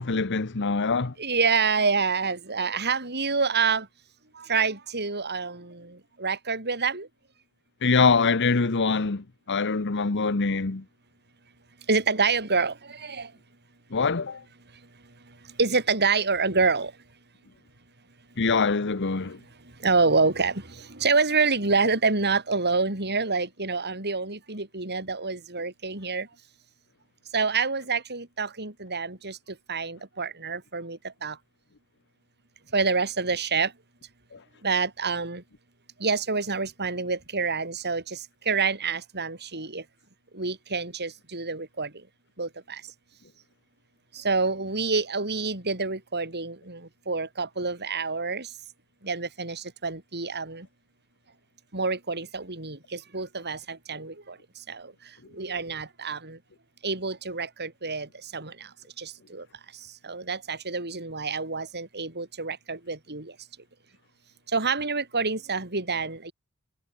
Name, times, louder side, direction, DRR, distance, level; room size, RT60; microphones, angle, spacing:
voice 1, 0.0-1.1 7.8-10.8 13.9-14.4 18.4-19.4 34.3-34.4, left 4 dB, 55° left, 1.0 m, -24 dB
voice 2, 1.2-3.9 4.3-7.1 11.9-13.3 15.3-16.9 19.6-26.3 27.3-31.4 32.7-33.7 34.6-35.4 36.0-39.8 40.3-42.1 42.4-42.9 44.1-48.5 49.0-50.7 51.7-56.4 56.8-59.5 59.7-63.3 64.5-66.3, right 4 dB, 50° right, 8.0 m, -27 dB
head